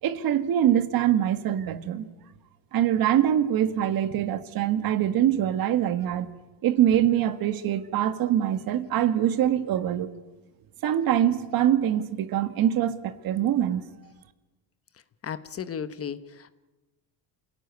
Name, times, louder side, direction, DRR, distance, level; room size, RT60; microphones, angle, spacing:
voice 1, 0.0-2.1 2.7-6.3 6.6-10.1 10.8-13.8, right 10 dB, 55° right, 1.7 m, -24 dB
voice 2, 15.2-16.5, left 7 dB, 30° left, 1.1 m, -35 dB
27.0 x 17.0 x 9.5 m
cardioid pair, 135°, 43 cm